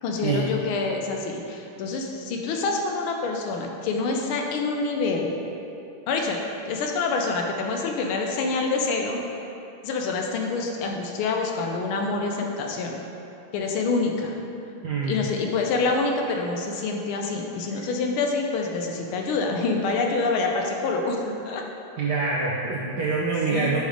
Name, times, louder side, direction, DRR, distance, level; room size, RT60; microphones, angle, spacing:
voice 1, 0.0-5.3 6.1-9.2 9.8-13.0 13.5-14.4 15.1-21.6 23.5-23.8, left 3 dB, 80° left, 2 dB, 1.5 m, -26 dB
voice 2, 14.8-15.2 22.0-23.8, right 4 dB, 75° right, -4 dB, 0.9 m, -25 dB
6.4 x 3.4 x 4.9 m, 2.7 s
omnidirectional pair, 2.4 m